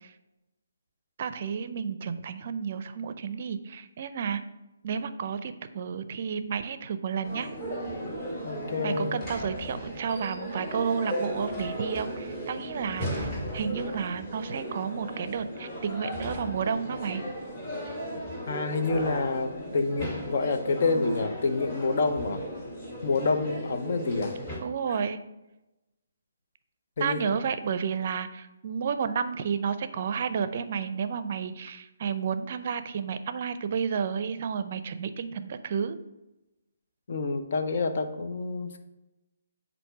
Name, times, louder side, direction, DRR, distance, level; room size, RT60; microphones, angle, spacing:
voice 1, 1.2-4.4 4.8-7.5 8.8-17.2 24.6-25.2 27.0-36.0, right 6 dB, 45° right, 11 dB, 0.5 m, -31 dB
sound 1, 7.2-24.6, equal, 30° left, 2.4 m, -36 dB
voice 2, 8.4-9.2 18.5-22.4 23.0-24.6 27.0-27.2 37.1-38.8, left 3 dB, 55° left, 7 dB, 0.7 m, -28 dB
7.7 x 2.6 x 5.7 m, 0.99 s
figure-of-eight pair, 140°, 0 cm